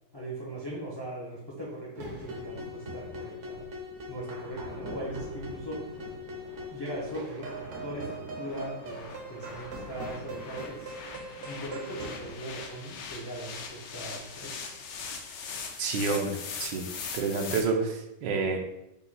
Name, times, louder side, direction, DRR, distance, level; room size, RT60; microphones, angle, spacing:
voice 1, 0.1-3.7 4.1-6.0 6.7-11.0 11.4-14.5, right 1 dB, 30° left, -4 dB, 0.5 m, -39 dB
sound 1, 1.9-12.3, equal, 55° right, 0.9 m, -41 dB
sound 2, 2.6-17.6, left 5 dB, 75° left, 1.2 m, -42 dB
voice 2, 15.8-16.9 17.1-18.6, right 4 dB, 75° right, 2 dB, 1.3 m, -29 dB
5.4 x 2.2 x 4.0 m, 0.87 s
omnidirectional pair, 2.0 m